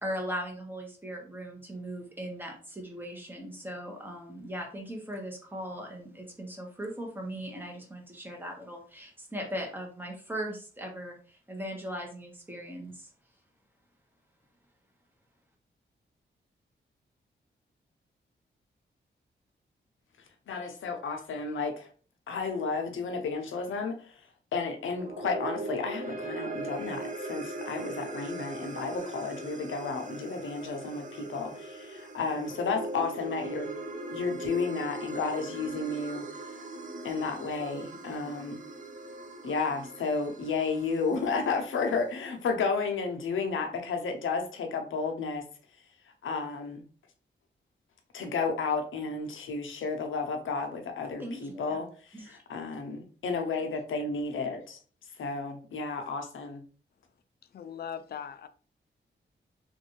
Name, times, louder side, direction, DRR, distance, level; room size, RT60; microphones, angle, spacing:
voice 1, 0.0-13.1 51.2-51.8 52.1-52.4, equal, 10° right, 1.3 m, -39 dB
voice 2, 20.5-21.9 22.3-24.2 24.5-33.7 34.1-36.2 37.0-38.6 39.4-45.4 46.2-46.8 48.1-54.8 55.2-56.6, left 4 dB, 85° left, 0.7 m, -32 dB
sound 1, 24.9-41.3, right 2 dB, 40° right, 0.7 m, -40 dB
voice 3, 57.5-58.5, left 8 dB, 55° left, 0.4 m, -39 dB
3.1 x 2.6 x 3.1 m
cardioid pair, 60°, 20 cm